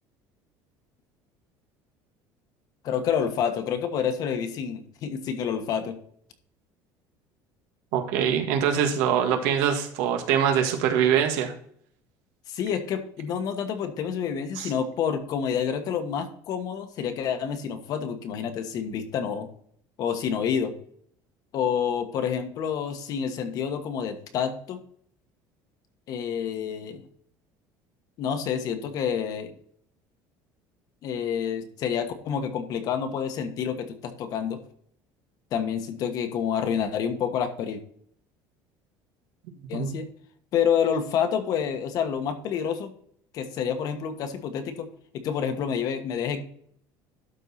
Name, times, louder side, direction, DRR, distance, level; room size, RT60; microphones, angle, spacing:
voice 1, 2.8-6.0 12.5-19.5 20.0-20.7 21.5-24.8 26.1-27.0 28.2-29.5 31.0-34.6 35.5-37.8 39.7-40.1 40.5-42.9 43.3-44.9 45.1-46.4, left 7 dB, 50° left, 7 dB, 1.3 m, -28 dB
voice 2, 7.9-11.5 14.6-14.7 39.7-40.0, right 8 dB, 90° right, 4 dB, 1.7 m, -23 dB
12.0 x 4.6 x 4.2 m, 0.63 s
cardioid pair, 160°, 9 cm